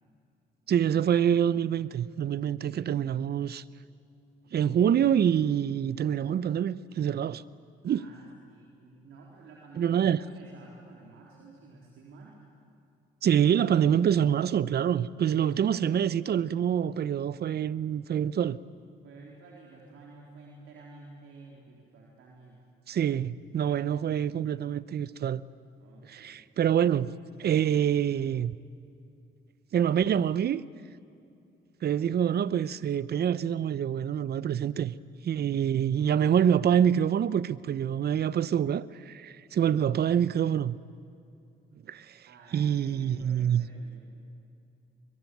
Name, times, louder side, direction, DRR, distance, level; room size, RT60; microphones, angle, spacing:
voice 1, 0.7-3.6 4.5-7.4 7.8-8.0 9.8-10.2 13.2-18.6 22.9-25.4 26.1-27.1 27.4-28.6 29.7-30.6 31.8-34.9 35.2-40.8 41.9-42.2 42.5-43.7, right 9 dB, 55° right, 0.8 m, -26 dB
voice 2, 7.8-12.4 19.0-22.6 25.8-26.4 42.3-44.0, right 3 dB, 80° right, 3.9 m, -52 dB
23.0 x 22.5 x 9.3 m
cardioid pair, 90°, 20 cm